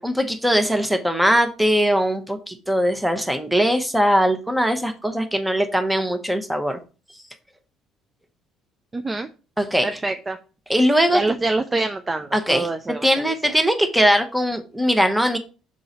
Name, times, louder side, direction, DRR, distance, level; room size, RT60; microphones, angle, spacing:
voice 1, 0.0-6.8 9.6-9.9 10.7-11.2 12.3-12.7 13.0-15.4, equal, 5° right, 8 dB, 1.1 m, -20 dB
voice 2, 8.9-9.3 9.8-10.4 11.1-13.6, right 2 dB, 25° right, 8 dB, 0.5 m, -26 dB
6.3 x 3.8 x 4.2 m, 0.34 s
figure-of-eight pair, 55°, 0 cm